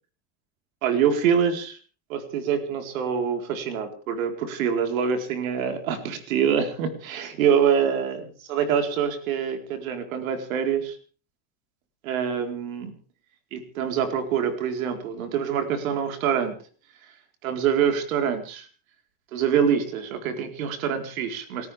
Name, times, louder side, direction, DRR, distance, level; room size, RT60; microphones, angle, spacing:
voice 1, 0.8-1.8 2.1-11.0 12.0-12.9 13.5-16.6 17.4-18.7 19.3-21.7, right 7 dB, 85° right, 5 dB, 4.4 m, -25 dB
29.5 x 14.0 x 3.5 m, 0.39 s
supercardioid pair, 105°, 40 cm